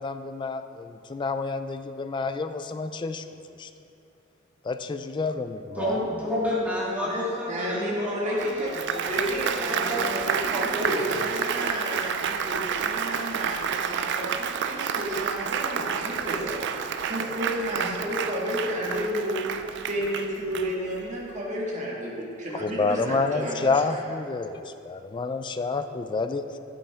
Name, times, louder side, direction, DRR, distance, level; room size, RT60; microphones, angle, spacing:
voice 1, 0.0-3.2 3.6-3.7 4.7-6.0 22.5-26.6, left 4 dB, 25° left, 9 dB, 0.3 m, -29 dB
voice 2, 5.8-10.2 10.5-11.2, left 1 dB, 10° right, -8 dB, 2.2 m, -30 dB
voice 3, 7.0-8.7 9.1-16.5 17.0-19.5 19.9-24.0, equal, 40° right, -4 dB, 1.7 m, -32 dB
Applause, 8.4-21.1, right 7 dB, 60° right, 0.4 m, -30 dB
8.6 x 8.5 x 3.5 m, 2.7 s
head